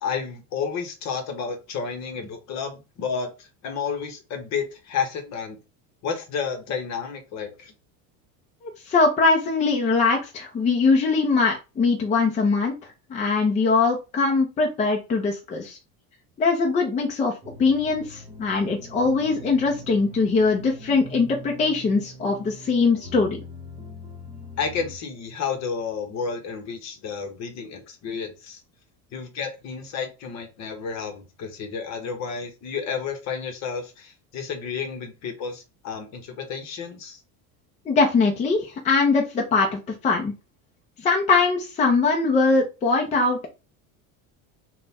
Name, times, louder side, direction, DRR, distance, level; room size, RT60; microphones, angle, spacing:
voice 1, 0.0-5.6 6.0-7.7 24.6-28.6 29.1-37.2, left 6 dB, 45° left, 1.0 m, -31 dB
voice 2, 8.6-12.7 13.1-15.8 16.4-17.3 17.6-23.4 37.9-40.3 41.0-43.5, left 4 dB, 20° left, 0.6 m, -21 dB
sound 1, 17.4-25.0, equal, 20° right, 1.2 m, -42 dB
3.8 x 2.3 x 4.0 m
cardioid pair, 165°, 38 cm